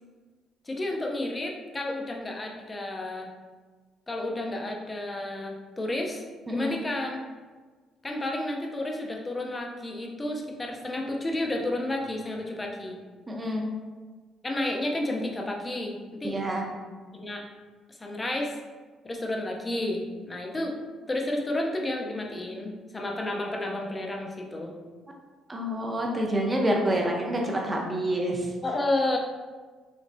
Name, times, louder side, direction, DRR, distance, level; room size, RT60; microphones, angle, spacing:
voice 1, 0.7-3.3 4.1-6.2 6.5-7.2 8.0-13.0 14.4-16.4 17.1-17.4 17.9-18.6 19.0-20.7 21.1-24.7 28.6-29.2, left 1 dB, 15° left, 1 dB, 0.6 m, -31 dB
voice 2, 13.3-13.6 16.2-16.7 25.5-28.5, right 1 dB, 20° right, 0 dB, 0.8 m, -27 dB
6.1 x 3.2 x 2.7 m, 1.4 s
cardioid pair, 140°, 0 cm